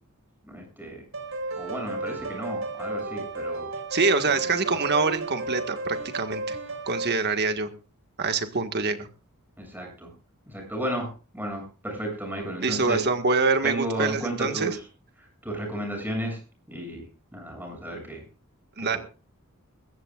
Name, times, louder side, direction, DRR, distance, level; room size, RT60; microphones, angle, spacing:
voice 1, 0.4-1.0 1.6-3.7 4.3-4.4 4.7-4.8 9.6-10.1 10.5-11.1 11.3-13.0 13.6-14.8 15.4-16.4 16.7-17.1 17.3-18.2, right 1 dB, 10° right, 2 dB, 7.7 m, -33 dB
sound 1, 1.1-7.1, right 2 dB, 65° right, 5.9 m, -33 dB
voice 2, 3.9-6.6 6.9-7.7 8.2-9.1 12.6-14.8 18.8-19.0, right 4 dB, 50° right, 7 dB, 1.8 m, -25 dB
21.5 x 15.5 x 2.5 m, 0.34 s
head